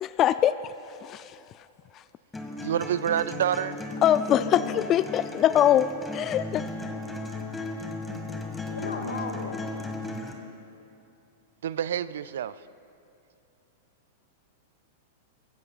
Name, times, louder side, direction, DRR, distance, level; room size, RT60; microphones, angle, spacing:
voice 1, 0.0-0.5 1.0-1.3 4.0-6.6, left 11 dB, 35° left, 13 dB, 0.3 m, -23 dB
sound 1, 2.3-10.3, left 2 dB, 10° left, 1.7 m, -35 dB
voice 2, 2.6-3.8 8.6-8.8 11.6-12.6, right 9 dB, 70° right, 16 dB, 0.4 m, -28 dB
voice 3, 4.3-4.9 8.8-9.6, left 4 dB, 90° left, 3 dB, 2.0 m, -35 dB
23.0 x 15.0 x 2.4 m, 2.7 s
hypercardioid pair, 100°, 0 cm